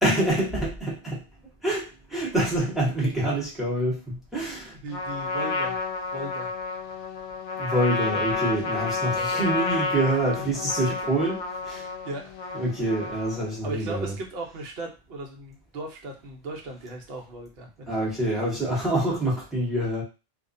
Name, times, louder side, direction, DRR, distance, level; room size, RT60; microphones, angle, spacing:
voice 1, 0.0-1.2 1.6-4.8 7.6-11.4 11.6-11.9 12.5-14.1 17.9-20.0, right 1 dB, ahead, -6 dB, 0.9 m, -26 dB
voice 2, 4.8-5.8 6.1-6.5 9.1-9.5 11.7-12.4 13.6-18.0 18.5-18.7, right 2 dB, 60° right, 1 dB, 0.8 m, -37 dB
Trumpet, 4.9-13.6, left 4 dB, 85° left, 0.9 m, -30 dB
2.4 x 2.1 x 2.5 m, 0.30 s
omnidirectional pair, 1.2 m